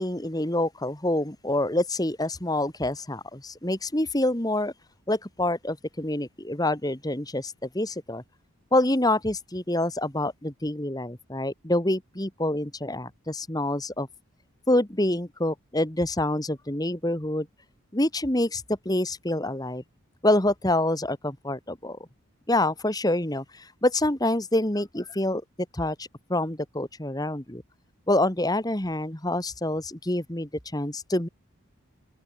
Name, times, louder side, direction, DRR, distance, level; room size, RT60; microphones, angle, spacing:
voice 1, 0.0-4.7 5.1-8.2 8.7-14.1 14.7-17.5 17.9-19.8 20.2-22.0 22.5-25.4 25.7-27.6 28.1-31.3, left 1 dB, 15° left, 1.7 m, -26 dB
open air
head